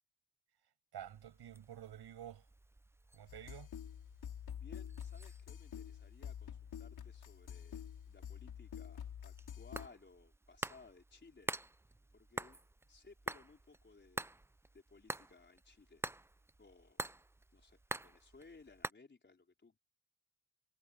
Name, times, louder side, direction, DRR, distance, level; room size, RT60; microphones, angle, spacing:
voice 1, 0.9-2.4 3.1-3.7, right 10 dB, 80° right, 6.7 m, -50 dB
sound 1, 1.0-18.9, right 2 dB, 5° right, 0.4 m, -49 dB
sound 2, 3.3-9.9, left 9 dB, 70° left, 5.2 m, -48 dB
voice 2, 4.6-11.5 12.1-12.6 12.9-14.3 14.7-16.0 16.6-17.0 17.5-19.8, left 4 dB, 30° left, 4.7 m, -61 dB
cardioid pair, 120°, 39 cm